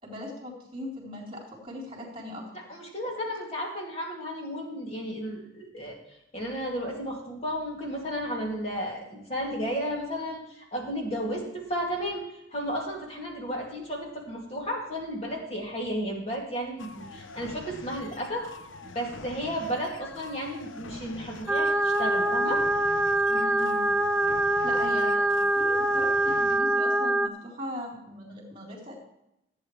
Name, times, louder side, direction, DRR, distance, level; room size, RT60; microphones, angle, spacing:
voice 1, 0.0-2.6 23.3-23.9 24.6-29.0, left 1 dB, 30° right, -2 dB, 3.8 m, -39 dB
voice 2, 2.7-6.0 6.3-12.2 12.5-18.5 18.8-22.6, equal, 35° left, -1 dB, 2.5 m, -33 dB
sound 1, 16.8-26.6, left 3 dB, 90° left, 0.7 m, -45 dB
sound 2, 21.5-27.3, right 1 dB, 5° right, 0.4 m, -24 dB
15.5 x 8.8 x 3.3 m, 0.83 s
head